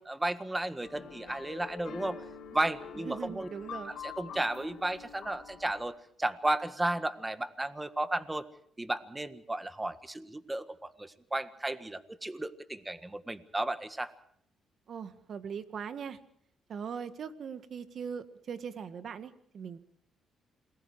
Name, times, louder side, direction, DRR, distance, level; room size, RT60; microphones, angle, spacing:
voice 1, 0.0-2.2 2.5-3.5 3.8-8.5 8.8-14.1, right 1 dB, 15° right, 12 dB, 1.6 m, -34 dB
sound 1, 0.8-5.8, left 7 dB, 70° left, 3.9 m, -46 dB
voice 2, 3.0-4.0 14.9-16.2 16.7-19.8, right 7 dB, 55° right, 11 dB, 1.7 m, -40 dB
28.0 x 20.5 x 4.9 m, 0.66 s
cardioid pair, 90°, 0 cm